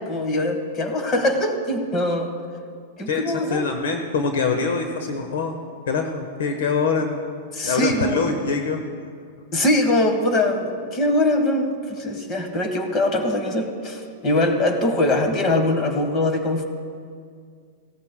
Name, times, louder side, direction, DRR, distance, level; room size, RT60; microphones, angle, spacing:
voice 1, 0.0-2.3 3.0-3.7 7.5-8.4 9.5-16.6, left 1 dB, 25° left, 6 dB, 1.4 m, -22 dB
voice 2, 3.1-5.5 5.9-7.2 7.6-8.8, left 4 dB, 80° left, 5 dB, 1.1 m, -24 dB
17.0 x 13.5 x 2.2 m, 2.1 s
supercardioid pair, 150°, 0 cm